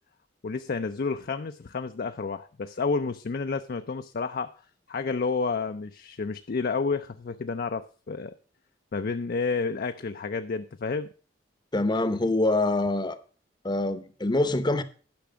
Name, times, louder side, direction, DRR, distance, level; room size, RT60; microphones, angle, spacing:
voice 1, 0.4-4.5 4.9-8.3 8.9-11.1, left 4 dB, 55° left, 0.5 m, -30 dB
voice 2, 11.7-13.2 13.6-14.8, left 2 dB, 25° left, 0.8 m, -25 dB
10.5 x 6.0 x 6.1 m
head